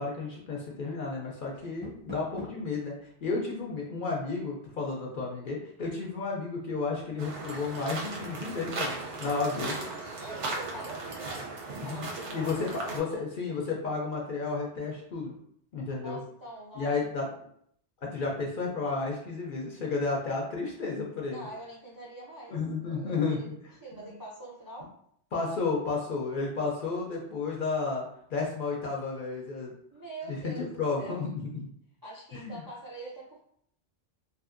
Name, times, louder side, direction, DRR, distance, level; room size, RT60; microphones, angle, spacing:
voice 1, 0.0-2.9 3.2-9.8 11.7-12.1 12.3-15.3 15.7-16.2 16.7-17.3 18.1-21.5 22.5-23.4 25.3-28.0 28.3-29.7 30.3-31.7 32.3-32.6, left 4 dB, 60° left, -2 dB, 0.6 m, -32 dB
Door, 1.5-2.8, left 2 dB, 10° left, 0.6 m, -44 dB
sound 1, 7.2-13.0, right 3 dB, 85° right, 0.9 m, -37 dB
voice 2, 10.2-13.2 15.9-17.3 21.3-22.6 22.9-23.5 23.8-24.9 29.9-31.3 32.0-33.4, right 2 dB, 35° right, -5 dB, 0.3 m, -44 dB
2.7 x 2.5 x 2.4 m, 0.68 s
omnidirectional pair, 1.2 m